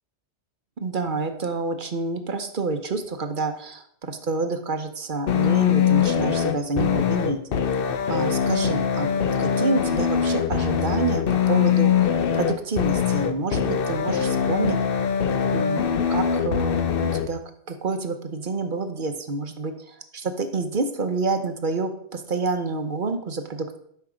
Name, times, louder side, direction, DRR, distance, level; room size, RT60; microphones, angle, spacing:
voice 1, 0.8-7.4 8.1-14.8 15.5-17.4 17.7-23.8, right 3 dB, 45° right, 7 dB, 1.1 m, -28 dB
sound 1, 5.3-17.3, left 8 dB, 55° left, 0.8 m, -22 dB
12.0 x 5.6 x 5.0 m, 0.68 s
omnidirectional pair, 1.2 m